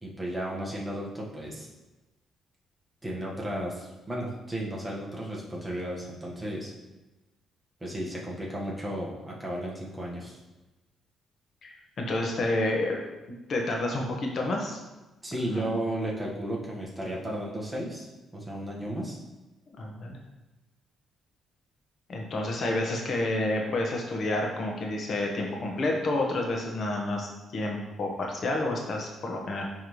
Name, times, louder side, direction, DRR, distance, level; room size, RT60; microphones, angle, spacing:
voice 1, 0.0-1.7 3.0-6.7 7.8-10.4 15.2-19.2, right 1 dB, 15° right, -4 dB, 1.6 m, -34 dB
voice 2, 11.6-13.0 13.5-14.8 15.5-15.8 19.7-20.2 22.1-29.6, left 2 dB, 55° left, 0 dB, 1.4 m, -29 dB
10.5 x 3.6 x 3.3 m, 1.1 s
cardioid pair, 90°, 0 cm